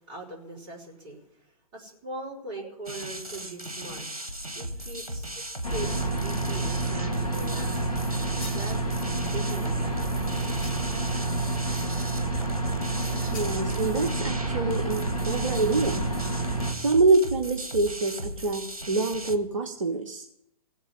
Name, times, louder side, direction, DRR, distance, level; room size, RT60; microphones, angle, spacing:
voice 1, 0.1-4.1 4.6-5.3 5.6-7.9 8.5-9.1 9.3-10.0, right 2 dB, 25° right, -1 dB, 4.1 m, -40 dB
sound 1, 2.9-19.4, right 1 dB, 80° right, 1.6 m, -37 dB
sound 2, 5.6-16.7, right 2 dB, 75° left, 2.7 m, -29 dB
sound 3, 8.1-8.7 10.6-11.1 13.3-13.6, left 4 dB, 35° left, 2.4 m, -45 dB
voice 2, 13.3-16.1 16.8-20.2, right 3 dB, 60° right, 5 dB, 1.1 m, -25 dB
17.0 x 7.2 x 10.0 m, 0.77 s
figure-of-eight pair, 115°, 19 cm